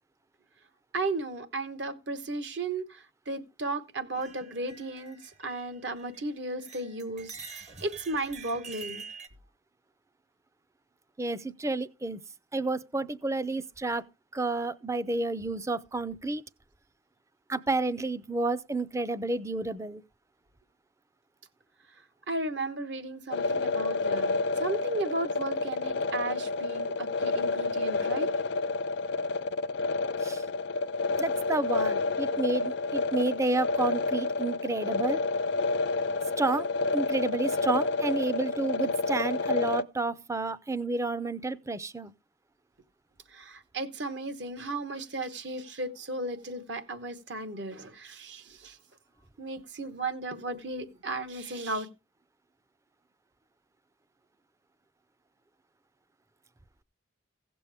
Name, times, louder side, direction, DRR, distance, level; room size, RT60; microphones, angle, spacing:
voice 1, 0.9-9.0 22.3-28.3 43.3-48.8 49.4-51.9, right 2 dB, 65° right, 1.2 m, -35 dB
sound 1, 4.2-6.3 6.6-9.3, right 5 dB, 35° right, 0.8 m, -46 dB
voice 2, 11.2-12.2 12.5-14.0 14.3-16.4 17.5-20.0 30.2-30.4 31.2-35.2 36.4-36.7 36.9-42.1, right 2 dB, 15° right, 0.4 m, -30 dB
sound 2, 23.3-39.8, left 3 dB, 60° left, 0.5 m, -29 dB
16.0 x 6.9 x 3.4 m
head